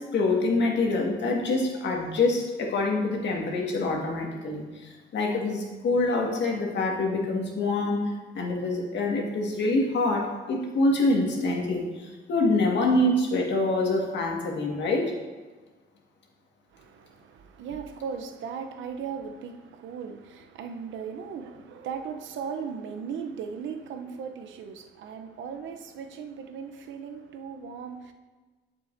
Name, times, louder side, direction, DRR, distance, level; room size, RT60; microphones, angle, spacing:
voice 1, 0.0-8.0 8.3-15.1, left 2 dB, 65° left, -1 dB, 1.7 m, -26 dB
voice 2, 16.7-28.1, right 6 dB, 75° right, 6 dB, 0.7 m, -37 dB
8.7 x 7.5 x 2.6 m, 1.3 s
cardioid pair, 90°, 20 cm